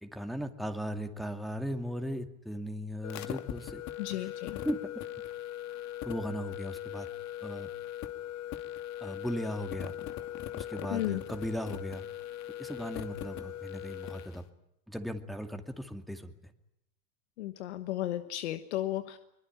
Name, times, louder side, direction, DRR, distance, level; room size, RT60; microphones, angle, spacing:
voice 1, 0.0-3.8 4.1-4.3 4.6-4.8 6.0-7.1 7.4-7.7 9.0-9.9 10.5-12.1 12.6-14.4 14.9-16.5, equal, ahead, 6 dB, 2.4 m, -37 dB
sound 1, 3.0-14.4, left 12 dB, 55° left, 2.4 m, -40 dB
voice 2, 4.0-4.6 10.9-11.2 17.4-19.2, left 14 dB, 90° left, 10 dB, 1.3 m, -34 dB
23.0 x 22.5 x 9.1 m, 0.81 s
supercardioid pair, 100°, 33 cm